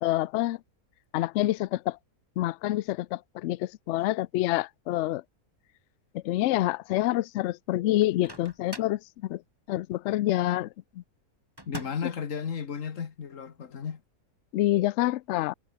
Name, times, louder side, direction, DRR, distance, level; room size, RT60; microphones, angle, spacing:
voice 1, 0.0-0.6 1.1-2.0 2.4-5.2 6.1-9.4 9.7-10.7 11.0-11.1 14.5-15.5, left 15 dB, 70° left, 0.7 m, -27 dB
Microwave oven, 8.0-9.0 11.6-12.2, right 1 dB, 15° right, 4.9 m, -42 dB
voice 2, 11.7-14.0, left 7 dB, 55° left, 1.7 m, -34 dB
omnidirectional pair, 1.7 m